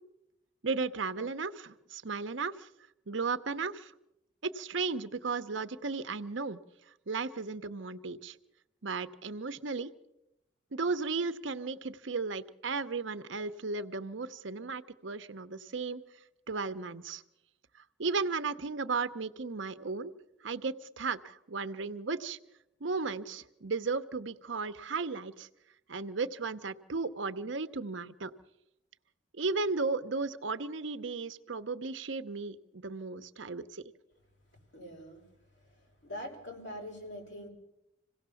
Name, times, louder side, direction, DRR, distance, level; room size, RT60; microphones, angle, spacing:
voice 1, 0.6-2.7 3.1-3.9 4.4-6.6 7.1-8.4 8.8-9.9 10.7-16.0 16.5-17.2 18.0-20.1 20.4-22.4 22.8-25.5 25.9-28.3 29.4-33.8, right 4 dB, 75° right, 11 dB, 0.8 m, -35 dB
voice 2, 34.7-35.2 35.7-37.5, equal, 65° left, 0 dB, 5.8 m, -43 dB
26.5 x 17.5 x 7.0 m, 0.88 s
head